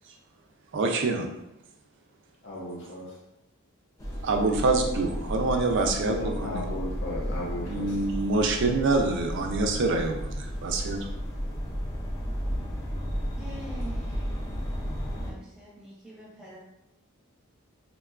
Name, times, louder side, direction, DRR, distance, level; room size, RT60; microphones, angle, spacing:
voice 1, 0.7-1.3 4.2-6.6 7.7-11.0, right 3 dB, 55° right, 3 dB, 0.4 m, -26 dB
voice 2, 2.4-3.2 5.8-8.0, left 1 dB, 55° left, -2 dB, 0.7 m, -36 dB
sound 1, 4.0-15.3, equal, 15° left, 0.4 m, -33 dB
voice 3, 13.3-14.3 15.2-16.6, right 1 dB, 5° right, -7 dB, 0.7 m, -45 dB
3.6 x 2.2 x 2.3 m, 0.85 s
head